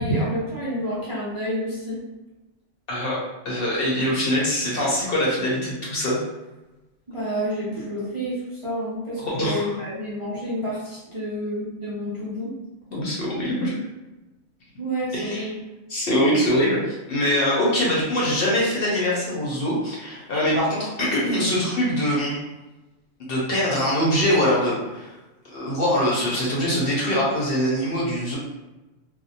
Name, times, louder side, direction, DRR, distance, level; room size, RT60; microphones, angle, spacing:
voice 1, 0.0-2.0 7.1-8.4 8.6-12.5 14.8-15.5, equal, 35° right, -9 dB, 0.5 m, -29 dB
voice 2, 2.9-3.2 3.4-6.2 9.2-9.8 12.9-13.7 15.1-15.5 15.9-22.4 23.3-25.1 25.5-28.4, equal, 55° left, -5 dB, 0.9 m, -23 dB
2.5 x 2.0 x 2.7 m, 1.1 s
omnidirectional pair, 1.3 m